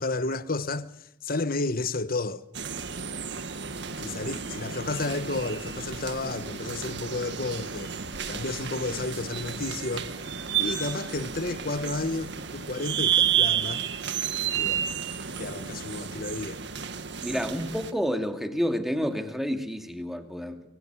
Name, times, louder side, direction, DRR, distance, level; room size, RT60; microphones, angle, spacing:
voice 1, 0.0-2.4 4.0-7.9 8.3-10.1 10.6-13.8 14.5-14.9 15.4-16.6, left 3 dB, 50° left, 1.2 m, -32 dB
sound 1, 2.5-17.9, right 8 dB, 65° right, 1.8 m, -31 dB
voice 2, 17.2-20.6, equal, ahead, 2.5 m, -29 dB
24.5 x 24.0 x 8.2 m
head